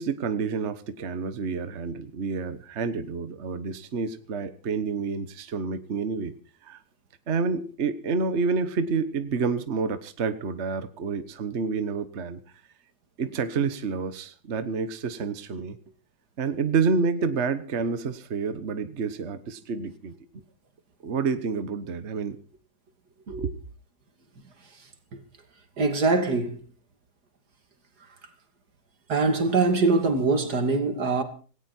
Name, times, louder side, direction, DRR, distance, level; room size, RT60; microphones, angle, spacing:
voice 1, 0.0-6.3 6.6-6.8 7.3-12.4 13.2-15.8 16.4-20.1 21.0-22.4 23.3-23.5, right 5 dB, 45° right, 1.4 m, -29 dB
voice 2, 25.8-26.6 29.1-31.2, right 3 dB, 80° right, 3.1 m, -23 dB
17.5 x 17.5 x 4.4 m
omnidirectional pair, 1.7 m